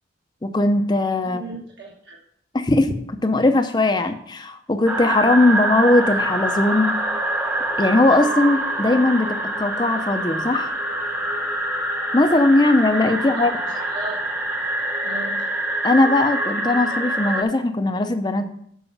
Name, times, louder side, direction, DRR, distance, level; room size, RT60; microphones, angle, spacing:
voice 1, 0.4-1.4 2.5-2.9 3.2-7.0 7.8-10.7 12.1-13.5 15.8-18.4, left 2 dB, 20° left, 7 dB, 0.5 m, -19 dB
voice 2, 1.2-2.2 5.5-5.6 13.2-13.4 13.7-14.2 15.0-15.3, right 3 dB, 65° right, -3 dB, 1.4 m, -36 dB
sound 1, 4.9-17.4, right 1 dB, 10° right, 0.8 m, -25 dB
7.0 x 4.8 x 7.0 m, 0.68 s
head